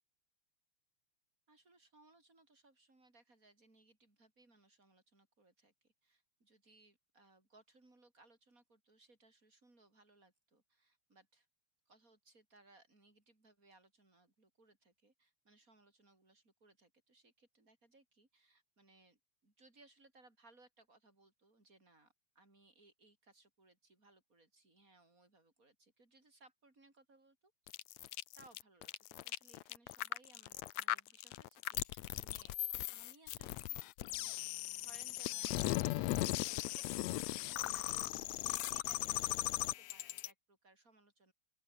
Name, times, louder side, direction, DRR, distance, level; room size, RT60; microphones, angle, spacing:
voice 1, 1.5-11.5 11.9-27.5 27.9-32.6 32.9-33.8 34.1-34.3 34.8-41.3, right 2 dB, 25° right, 7.3 m, -66 dB
sound 1, 27.7-40.3, left 17 dB, 75° left, 1.8 m, -38 dB
open air
omnidirectional pair, 3.5 m